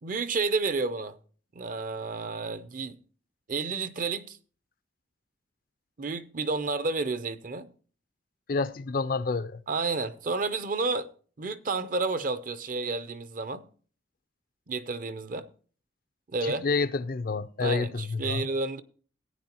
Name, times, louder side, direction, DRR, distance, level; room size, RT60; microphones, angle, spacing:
voice 1, 0.0-1.2 1.5-3.0 3.5-4.4 6.0-7.7 9.7-11.1 11.4-13.7 14.7-15.5 16.3-16.7 17.6-18.8, right 3 dB, 50° right, 0.6 m, -30 dB
voice 2, 8.5-9.6 16.4-18.5, left 4 dB, 55° left, 0.4 m, -29 dB
15.5 x 9.3 x 2.9 m
head